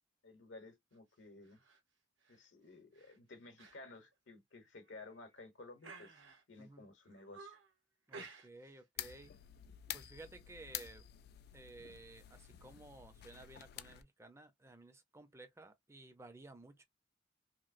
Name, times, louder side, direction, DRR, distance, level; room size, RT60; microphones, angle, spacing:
voice 1, 0.2-1.6 2.3-6.2 6.5-7.6, left 2 dB, 75° left, 0.9 m, -55 dB
sound 1, 1.4-1.8 2.2-2.5 2.9-3.2 3.6-3.8 4.1-4.2 4.8-5.3 5.8-6.6 7.0-7.7 8.1-8.8 9.1-9.3, right 3 dB, 75° right, 1.0 m, -55 dB
voice 2, 8.1-9.3 9.9-11.1 11.5-16.9, right 2 dB, 15° right, 0.5 m, -55 dB
sound 2, 9.0-14.0, left 12 dB, 55° left, 0.3 m, -49 dB
3.0 x 2.7 x 2.5 m
head